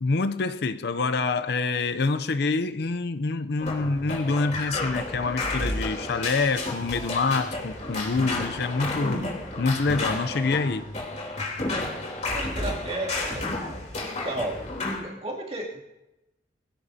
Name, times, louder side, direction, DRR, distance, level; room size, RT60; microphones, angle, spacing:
voice 1, 0.0-9.3 9.6-10.9, left 3 dB, 60° left, 0.6 m, -26 dB
sound 1, 3.6-15.0, left 2 dB, 40° left, 3.3 m, -31 dB
voice 2, 12.3-13.4 14.0-14.7 15.0-15.8, right 1 dB, 35° right, 2.7 m, -33 dB
22.5 x 16.0 x 2.8 m
head